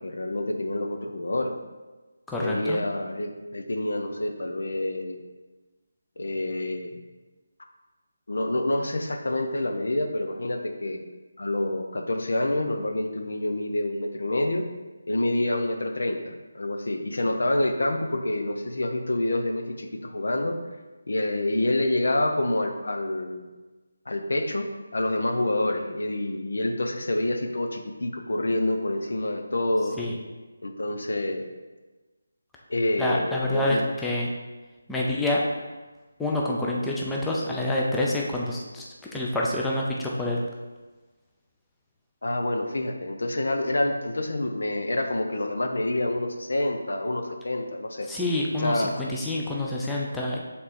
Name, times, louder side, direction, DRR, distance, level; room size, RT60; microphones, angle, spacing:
voice 1, 0.0-1.5 2.4-5.2 6.2-7.0 8.3-11.0 11.4-14.6 15.1-20.6 21.1-23.5 24.1-24.7 24.9-30.0 30.6-31.5 32.7-33.8 42.2-48.1 48.6-48.9, left 1 dB, 75° left, 4 dB, 0.8 m, -27 dB
voice 2, 2.3-2.8 30.0-30.1 33.0-34.3 34.9-35.4 36.2-38.9 39.1-40.4 48.1-50.4, left 1 dB, 5° left, -4 dB, 0.5 m, -27 dB
6.6 x 3.7 x 4.3 m, 1.2 s
figure-of-eight pair, 165°, 0 cm